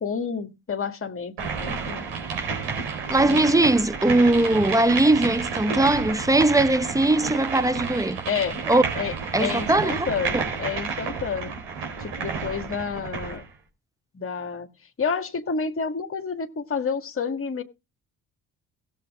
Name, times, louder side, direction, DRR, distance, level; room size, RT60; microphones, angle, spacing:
voice 1, 0.0-2.0 3.2-3.7 8.3-8.6 9.0-9.1 9.4-11.5 12.0-13.4 14.1-14.7 15.0-17.6, left 5 dB, 30° left, 1.8 m, -29 dB
sound 1, 1.4-13.4, right 5 dB, 70° right, 4.2 m, -30 dB
voice 2, 3.1-8.2 8.7-8.8 9.3-10.1 10.3-10.4, right 2 dB, 10° right, 0.8 m, -20 dB
17.0 x 7.4 x 3.6 m
hypercardioid pair, 55°, 43 cm